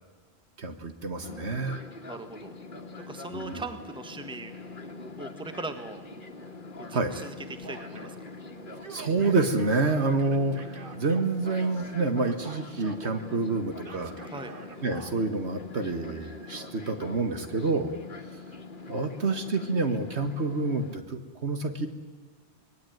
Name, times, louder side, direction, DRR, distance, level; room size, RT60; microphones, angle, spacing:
voice 1, 0.6-1.8 3.3-3.6 6.9-7.1 8.9-14.1 14.8-18.0 18.9-21.9, right 3 dB, 90° right, 7 dB, 2.0 m, -28 dB
Fixed-wing aircraft airplane, 1.2-21.0, left 3 dB, 50° left, 2.1 m, -43 dB
voice 2, 2.1-2.5 3.0-4.5 5.2-6.0 6.8-8.2 14.3-14.5, right 2 dB, 5° right, 7 dB, 1.5 m, -39 dB
Male speech man speaking / Yell, 7.6-8.2 8.7-11.9 12.2-13.2 13.8-15.1, right 3 dB, 50° right, 1.9 m, -46 dB
25.5 x 20.0 x 9.3 m, 1.5 s
omnidirectional pair, 1.1 m